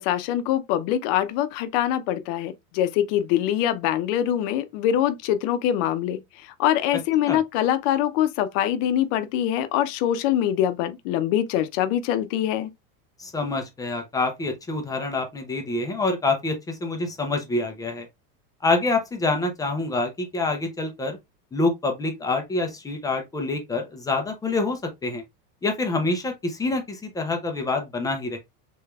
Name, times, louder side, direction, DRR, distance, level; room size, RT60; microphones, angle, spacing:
voice 1, 0.0-12.7, left 11 dB, 60° left, 0.6 m, -24 dB
voice 2, 13.2-18.1 18.6-21.2 21.5-25.2 25.6-28.4, left 3 dB, 10° left, 0.4 m, -26 dB
3.3 x 3.0 x 2.3 m
supercardioid pair, 145°, 42 cm